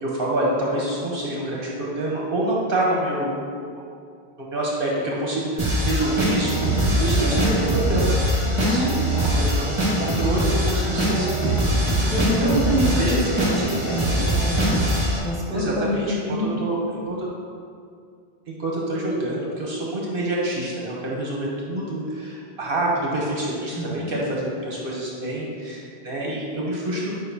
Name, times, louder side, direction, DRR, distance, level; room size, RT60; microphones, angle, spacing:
voice 1, 0.0-3.4 3.7-3.8 4.4-6.6 7.0-8.1 8.5-9.0 9.4-13.5 15.5-16.8 17.1-17.3 18.5-27.2, right 1 dB, 60° right, -4 dB, 1.1 m, -27 dB
sound 1, 5.6-15.2, right 1 dB, 30° right, 1.4 m, -22 dB
voice 2, 6.8-7.1 8.6-9.3 11.8-13.2 13.5-16.5 23.7-24.2, equal, ahead, -9 dB, 1.4 m, -27 dB
7.9 x 5.0 x 2.7 m, 2.3 s
omnidirectional pair, 1.1 m